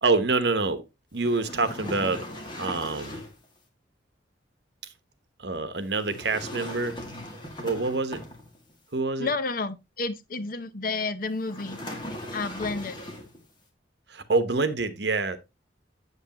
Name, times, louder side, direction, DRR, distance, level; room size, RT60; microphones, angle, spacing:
voice 1, 0.0-0.8 1.1-2.2 2.6-3.2 5.4-7.0 7.6-8.2 8.9-9.3 14.1-15.4, right 3 dB, 65° right, 1.1 m, -26 dB
sound 1, 1.2-3.4 6.0-8.7 11.4-13.4, left 1 dB, 25° left, 2.1 m, -39 dB
voice 2, 9.2-11.8 12.3-13.0, left 3 dB, 50° left, 0.8 m, -30 dB
8.1 x 8.1 x 3.0 m
head